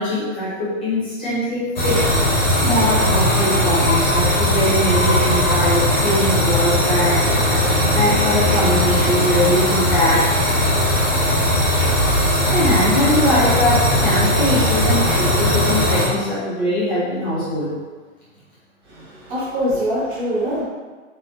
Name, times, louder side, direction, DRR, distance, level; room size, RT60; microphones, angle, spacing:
voice 1, 0.0-2.0 2.4-7.3 7.9-10.3 12.5-17.8, equal, 10° left, -11 dB, 0.4 m, -21 dB
sound 1, 1.8-16.1, left 1 dB, 30° left, 1.2 m, -18 dB
Wind instrument woodwind instrument, 6.0-9.6, left 3 dB, 40° right, 1.4 m, -30 dB
voice 2, 18.8-20.7, equal, 25° right, -9 dB, 1.3 m, -23 dB
4.1 x 3.7 x 2.6 m, 1.4 s
figure-of-eight pair, 115°, 40 cm